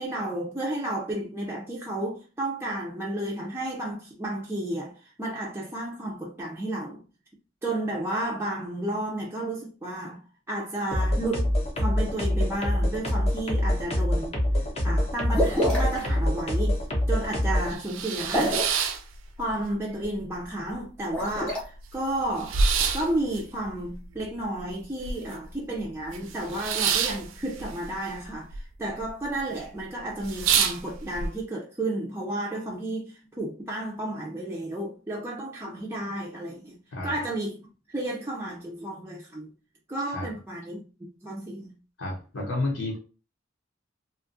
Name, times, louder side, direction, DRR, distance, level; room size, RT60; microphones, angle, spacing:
voice 1, 0.0-7.0 7.6-14.4 14.8-16.8 17.1-18.7 19.4-22.6 22.9-37.6 37.9-39.5 39.9-41.7, right 1 dB, 15° right, 0.4 m, -32 dB
sound 1, 10.9-17.7, left 1 dB, 30° left, 0.7 m, -25 dB
sound 2, 15.3-16.0 18.2-18.8 21.0-21.6, equal, 5° left, 0.9 m, -26 dB
sound 3, 16.5-16.6 17.0-17.1 17.5-19.7 20.0-20.7 21.1-21.2 21.4-25.5 25.8-28.6 28.9-29.4 29.8-29.9 30.2-31.3, right 6 dB, 80° right, 0.4 m, -28 dB
voice 2, 42.0-43.0, left 2 dB, 70° left, 0.9 m, -30 dB
2.7 x 2.3 x 2.5 m
head